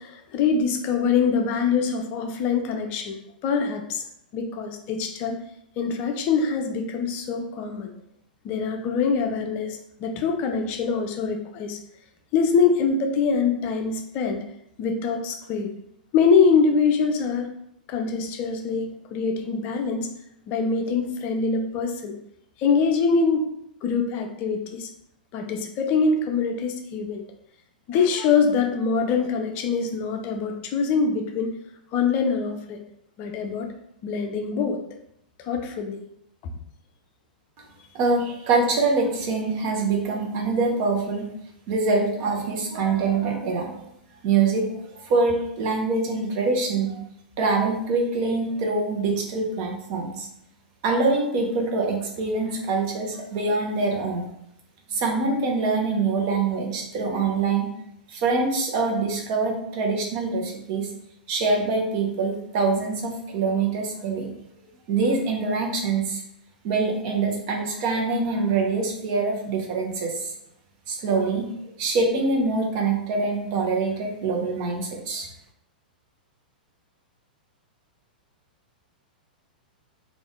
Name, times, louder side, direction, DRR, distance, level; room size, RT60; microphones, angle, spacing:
voice 1, 0.0-4.0 4.3-5.4 5.8-7.9 8.4-11.8 12.3-14.4 14.8-15.7 16.1-17.5 17.9-20.1 20.5-22.1 22.6-23.5 23.8-24.9 25.3-27.2 27.9-31.5 31.9-32.8 33.2-33.7 34.0-34.8 35.5-36.0, left 5 dB, 35° left, 4 dB, 0.5 m, -24 dB
voice 2, 37.9-41.3 41.7-43.9 44.2-47.0 47.4-50.3 50.8-54.3 54.9-57.7 58.1-60.9 61.3-64.3 64.9-66.2 66.6-70.3 70.9-71.5 71.8-75.3, right 3 dB, 40° right, 1 dB, 0.9 m, -24 dB
3.5 x 2.5 x 3.5 m, 0.75 s
figure-of-eight pair, 100°, 5 cm